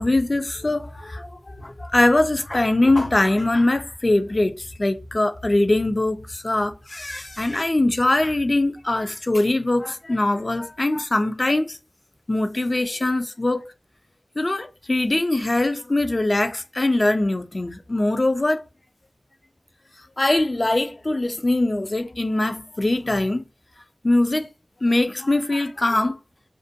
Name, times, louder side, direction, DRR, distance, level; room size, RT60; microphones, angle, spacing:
voice 1, 0.0-11.8 12.3-13.6 14.4-18.6 20.2-23.4 24.0-24.5 24.8-26.2, left 2 dB, 45° left, 0.4 m, -22 dB
2.5 x 2.2 x 2.6 m
wide cardioid pair, 50°, 0 cm